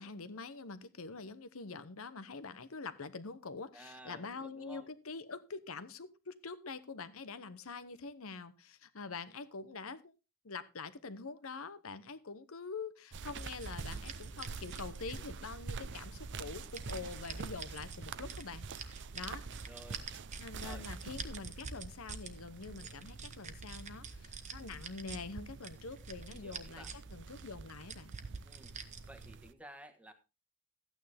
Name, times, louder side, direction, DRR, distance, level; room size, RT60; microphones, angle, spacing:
voice 1, 0.0-10.1 10.4-19.4 20.4-26.8 27.1-28.4, left 4 dB, 70° left, 14 dB, 1.0 m, -45 dB
voice 2, 3.7-4.9 19.1-19.2 19.6-20.0 20.6-20.9 26.3-26.9 28.4-28.7 29.1-30.1, right 1 dB, 5° right, 5 dB, 1.4 m, -53 dB
sound 1, 13.1-29.5, right 4 dB, 55° right, 0.6 m, -46 dB
sound 2, 13.4-15.5 16.1-18.0 18.3-22.3 22.6-25.2 25.6-27.1 27.4-27.5 27.9-29.2, right 5 dB, 35° right, 1.2 m, -47 dB
14.0 x 9.2 x 3.5 m, 0.28 s
head